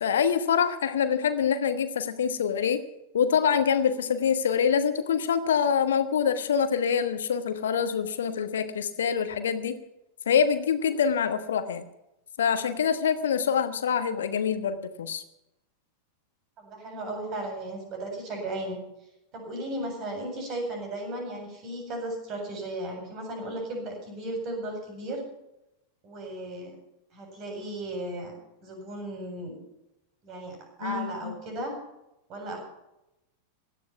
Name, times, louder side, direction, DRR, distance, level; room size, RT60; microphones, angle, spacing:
voice 1, 0.0-2.8 3.1-9.8 10.3-11.8 12.4-15.2 30.8-31.3, left 7 dB, 65° left, 10 dB, 1.2 m, -25 dB
voice 2, 16.6-18.8 19.3-25.2 26.0-26.7 27.1-28.3 28.6-29.6 30.2-31.7 32.3-32.6, right 1 dB, 35° right, 2 dB, 7.8 m, -35 dB
17.0 x 11.5 x 6.0 m, 0.88 s
figure-of-eight pair, 90°, 0 cm